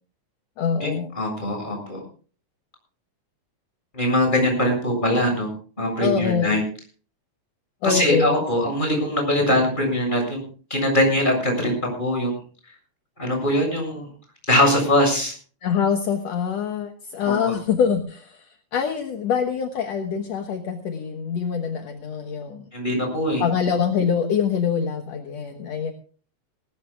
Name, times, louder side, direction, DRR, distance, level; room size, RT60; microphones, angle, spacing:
voice 1, 0.6-1.1 6.0-6.5 7.8-8.5 15.6-22.6 23.4-25.9, left 7 dB, 65° left, 5 dB, 2.4 m, -24 dB
voice 2, 1.1-2.0 3.9-5.5 5.8-6.6 7.8-10.4 10.7-12.4 13.2-14.1 14.5-15.3 17.2-17.3 22.7-23.4, left 1 dB, 15° left, 2 dB, 7.3 m, -22 dB
19.5 x 19.5 x 2.4 m, 0.40 s
omnidirectional pair, 3.4 m